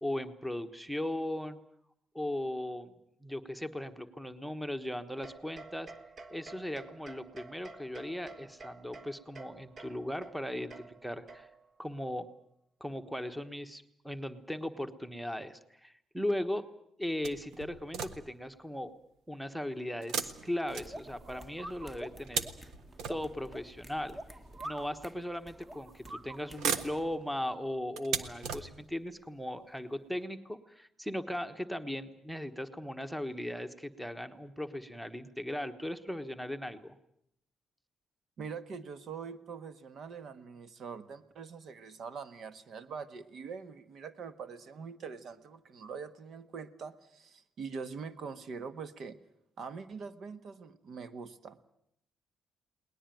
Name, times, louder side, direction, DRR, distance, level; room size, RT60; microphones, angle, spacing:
voice 1, 0.0-1.6 2.1-2.9 3.2-5.9 6.3-11.5 11.8-12.3 12.8-16.6 17.0-18.9 19.3-22.5 23.1-24.2 24.6-36.9, left 1 dB, ahead, 11 dB, 1.2 m, -38 dB
sound 1, 5.2-11.8, right 3 dB, 40° right, 1.3 m, -51 dB
sound 2, 17.2-18.5 20.0-21.4 22.0-23.6 24.5-24.6 25.7-26.1 26.4-29.1 29.8-29.9 30.2-30.3, right 7 dB, 85° right, 1.4 m, -38 dB
sound 3, 20.7-27.1, right 1 dB, 25° right, 1.7 m, -47 dB
voice 2, 38.4-49.2 49.6-51.6, right 5 dB, 60° right, 11 dB, 1.4 m, -43 dB
21.0 x 19.5 x 9.2 m, 0.75 s
cardioid pair, 120°, 0 cm